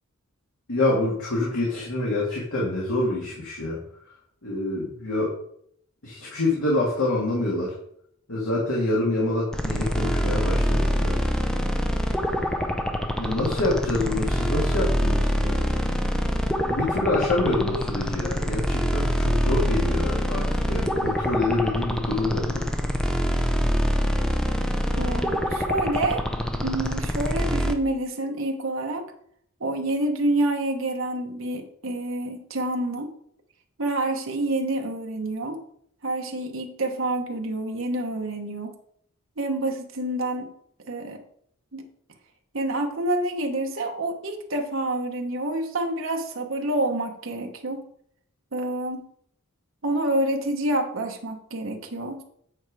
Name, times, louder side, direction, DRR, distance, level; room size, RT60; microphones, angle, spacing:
voice 1, 0.7-3.8 4.4-5.3 6.0-7.7 8.3-11.2 13.2-15.7 16.7-22.7, left 2 dB, 75° left, -5 dB, 2.1 m, -26 dB
sound 1, 9.5-27.7, equal, 5° left, 0.6 m, -25 dB
voice 2, 24.9-26.2 26.6-29.0 29.6-33.1 33.8-35.6 36.0-38.8 39.4-40.5 40.9-41.2 41.7-41.8 42.5-47.8 48.5-49.1 49.8-52.2, right 1 dB, 65° right, 2 dB, 1.0 m, -28 dB
8.9 x 4.6 x 4.7 m, 0.68 s
head